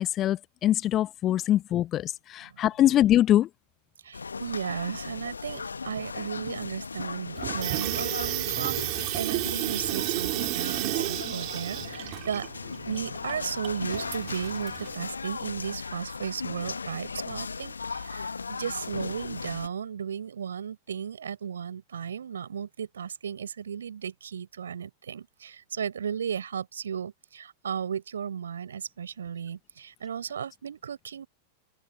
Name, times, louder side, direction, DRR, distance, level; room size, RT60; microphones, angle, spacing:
voice 1, 0.0-3.5, left 12 dB, 30° left, 1.0 m, -23 dB
voice 2, 4.0-12.5 12.9-31.3, right 8 dB, 70° right, 5.2 m, -35 dB
sound 1, 4.1-19.7, left 4 dB, 75° left, 1.5 m, -37 dB
Water tap faucet / Sink (filling or washing), 7.4-14.9, right 28 dB, 45° right, 4.0 m, -32 dB
open air
figure-of-eight pair, 90°, 0 cm